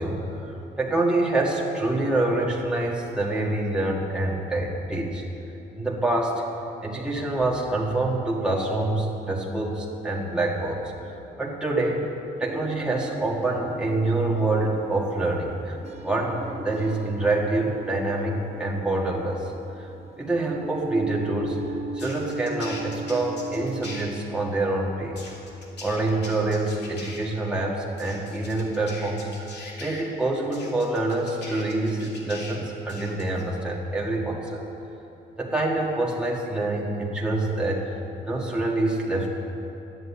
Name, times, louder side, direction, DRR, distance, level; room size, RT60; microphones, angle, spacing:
voice 1, 0.0-5.2 5.8-6.4 6.8-10.9 11.4-12.1 12.4-15.8 16.0-19.5 19.8-19.9 20.2-21.6 21.9-25.3 25.8-34.6 35.4-38.0 38.2-39.3, right 2 dB, 5° right, -3 dB, 1.8 m, -26 dB
sound 1, 12.4-24.1, right 2 dB, 30° right, 1.0 m, -37 dB
sound 2, 22.0-24.0 25.1-27.2 28.0-30.0 30.5-32.6 32.9-33.4, left 3 dB, 60° left, 2.5 m, -41 dB
11.0 x 7.8 x 8.4 m, 3.0 s
cardioid pair, 90°, 20 cm